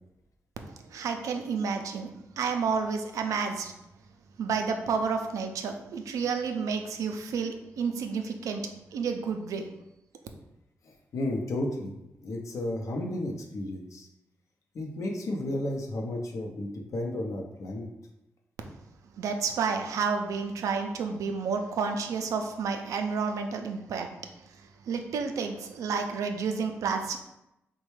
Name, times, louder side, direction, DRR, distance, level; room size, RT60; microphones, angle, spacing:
voice 1, 0.9-3.7 4.4-8.6 8.9-9.7 19.2-24.1 24.9-27.2, right 5 dB, 85° right, 5 dB, 0.3 m, -30 dB
voice 2, 10.8-11.9 12.2-14.1 14.7-17.9, left 1 dB, 70° left, 1 dB, 0.6 m, -33 dB
3.2 x 2.2 x 3.1 m, 0.88 s
cardioid pair, 65°, 5 cm